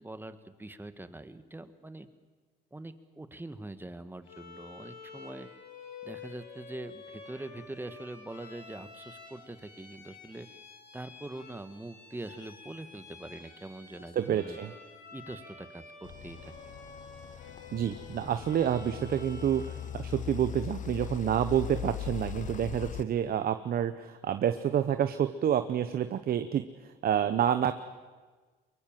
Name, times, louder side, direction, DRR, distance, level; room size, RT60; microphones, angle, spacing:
voice 1, 0.0-2.1 2.7-5.5 6.0-10.5 10.9-14.6 15.1-16.5, right 2 dB, 10° right, 11 dB, 1.5 m, -43 dB
Bowed string instrument, 4.2-20.0, left 4 dB, 85° left, 6.9 m, -50 dB
voice 2, 14.1-14.7 17.7-27.7, right 9 dB, 50° right, 10 dB, 1.0 m, -28 dB
sound 1, 16.0-23.0, left 10 dB, 45° left, 0.6 m, -40 dB
24.0 x 22.0 x 7.6 m, 1.4 s
cardioid pair, 100°, 19 cm